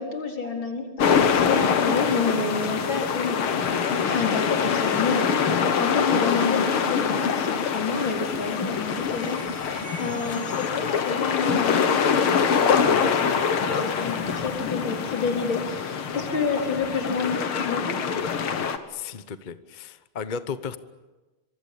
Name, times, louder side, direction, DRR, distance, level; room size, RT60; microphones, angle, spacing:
voice 1, 0.0-3.8 4.1-18.0, left 4 dB, 60° left, 2 dB, 4.8 m, -29 dB
sound 1, 1.0-18.8, left 6 dB, 80° left, 2.4 m, -24 dB
sound 2, 3.3-14.0, equal, 10° left, 4.0 m, -47 dB
voice 2, 18.5-20.8, left 6 dB, 40° left, 12 dB, 0.6 m, -35 dB
26.0 x 24.0 x 8.6 m, 1.2 s
omnidirectional pair, 2.4 m